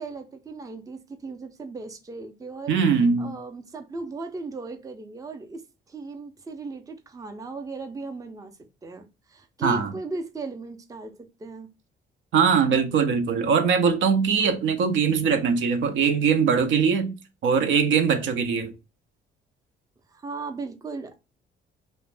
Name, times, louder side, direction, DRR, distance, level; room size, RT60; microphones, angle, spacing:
voice 1, 0.0-2.7 3.2-8.6 8.8-11.7 20.1-21.2, right 3 dB, 15° right, 0.4 m, -37 dB
voice 2, 2.7-3.3 9.6-9.9 12.3-17.1 17.4-18.7, right 6 dB, 75° right, 0.5 m, -21 dB
2.4 x 2.1 x 3.2 m
cardioid pair, 90°, 20 cm